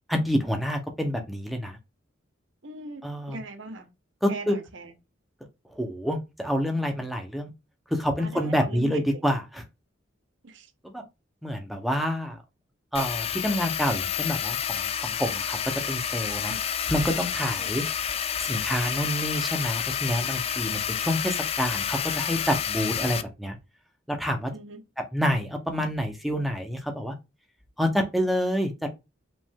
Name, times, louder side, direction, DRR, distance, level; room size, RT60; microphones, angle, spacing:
voice 1, 0.1-1.8 3.0-3.4 4.2-4.6 5.7-7.5 7.9-9.6 10.8-11.0 11.4-12.4 12.9-15.6 15.9-16.5 16.9-17.8 18.4-23.6 24.1-24.5 25.1-27.1 27.8-28.9, equal, ahead, 0.8 m, -28 dB
voice 2, 2.6-3.9 4.3-4.9 8.2-9.2 10.4-10.7 16.5-16.6 17.6-17.7 24.5-24.8, right 2 dB, 70° right, 0.9 m, -40 dB
sound 1, 12.9-23.2, left 8 dB, 30° left, 0.3 m, -29 dB
5.2 x 2.6 x 3.6 m
head